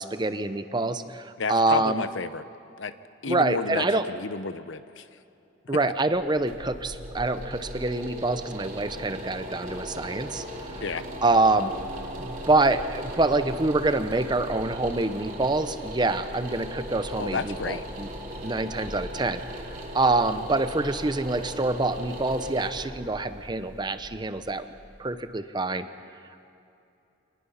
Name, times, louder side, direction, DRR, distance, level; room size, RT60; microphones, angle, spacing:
voice 1, 0.0-2.1 3.2-4.0 5.7-10.8 11.2-11.7 12.2-18.1 18.4-24.7 25.0-25.9, right 2 dB, 25° right, 11 dB, 0.7 m, -26 dB
voice 2, 1.4-2.4 2.8-2.9 3.2-5.1 10.8-11.0 17.2-17.8, left 5 dB, 80° left, 13 dB, 0.8 m, -31 dB
sound 1, 6.1-25.0, equal, 45° right, 2.8 m, -38 dB
26.5 x 19.5 x 5.7 m, 2.7 s
head